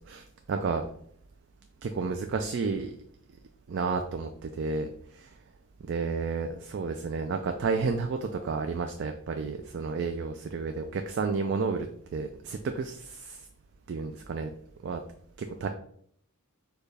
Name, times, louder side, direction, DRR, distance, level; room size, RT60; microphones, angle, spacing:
voice 1, 0.1-0.9 1.8-3.0 3.7-5.3 5.9-13.5 13.9-14.5 14.8-15.0 15.4-15.7, right 4 dB, 55° right, 6 dB, 0.3 m, -31 dB
6.5 x 2.3 x 3.3 m, 0.65 s
head